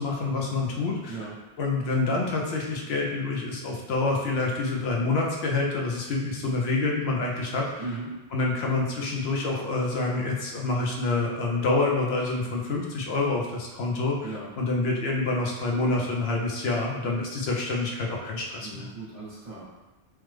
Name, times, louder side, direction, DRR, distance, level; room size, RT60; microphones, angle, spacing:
voice 1, 0.0-1.3 1.6-7.7 8.3-18.9, left 3 dB, 75° left, -1 dB, 0.8 m, -27 dB
voice 2, 7.8-8.1 14.2-14.5 18.6-19.6, right 3 dB, 35° right, -8 dB, 0.8 m, -37 dB
3.2 x 2.0 x 3.2 m, 1.1 s
omnidirectional pair, 1.1 m